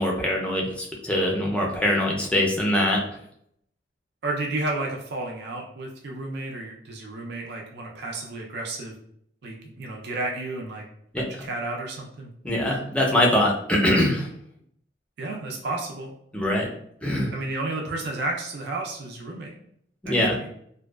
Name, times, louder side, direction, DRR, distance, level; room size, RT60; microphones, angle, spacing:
voice 1, 0.0-3.0 11.1-11.5 12.4-14.3 16.3-16.7 17.0-17.3 20.0-20.4, left 1 dB, 5° left, -1 dB, 0.4 m, -23 dB
voice 2, 4.2-8.9 9.4-10.8 11.1-12.3 15.2-16.1 17.3-19.5 20.0-20.5, right 2 dB, 65° right, 0 dB, 0.4 m, -32 dB
2.5 x 2.2 x 2.2 m, 0.70 s
head